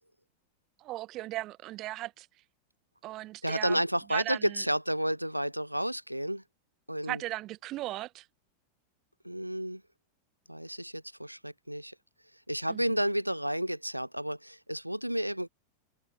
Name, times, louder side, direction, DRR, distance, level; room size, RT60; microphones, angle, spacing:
voice 1, 0.8-2.3 3.0-3.8 4.1-4.6 7.1-8.2 12.7-12.8, right 16 dB, 35° right, 2.1 m, -37 dB
voice 2, 3.4-6.4 6.9-7.2 9.2-9.8 10.5-11.9 12.5-15.5, equal, 90° right, 0.6 m, -31 dB
figure-of-eight pair, 90°, 0 cm